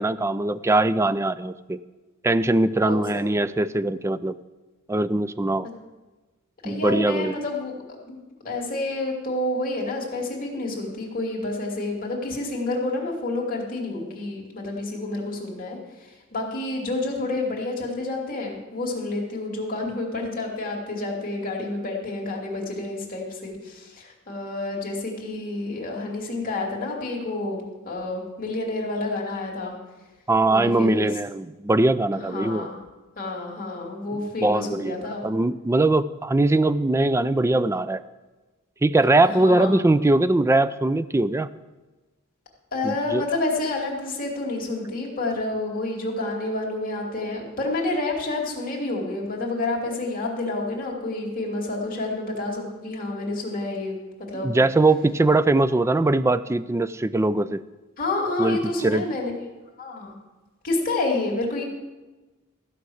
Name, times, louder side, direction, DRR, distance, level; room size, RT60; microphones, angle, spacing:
voice 1, 0.0-1.8 2.2-4.3 4.9-5.7 6.6-7.4 30.3-32.7 34.1-38.0 38.8-41.5 42.8-43.2 54.3-57.6 58.4-58.6 58.8-59.0, right 2 dB, 15° right, 15 dB, 0.3 m, -21 dB
voice 2, 6.6-29.8 30.5-31.1 32.1-32.8 33.2-35.2 39.2-39.7 42.7-54.6 58.0-59.3 59.8-60.1 60.6-61.6, left 2 dB, 40° left, -2 dB, 2.7 m, -29 dB
14.5 x 5.9 x 7.8 m, 1.2 s
head